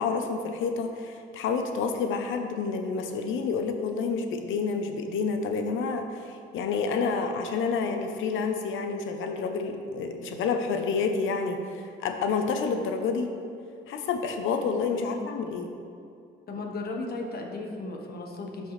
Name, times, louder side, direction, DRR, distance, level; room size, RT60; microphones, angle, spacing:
voice 1, 0.0-13.3 13.9-15.7, left 5 dB, 80° left, 5 dB, 0.7 m, -29 dB
voice 2, 15.0-15.3 16.5-18.7, left 2 dB, 50° left, 1 dB, 1.2 m, -35 dB
12.0 x 4.5 x 3.2 m, 2.5 s
cardioid pair, 90°, 20 cm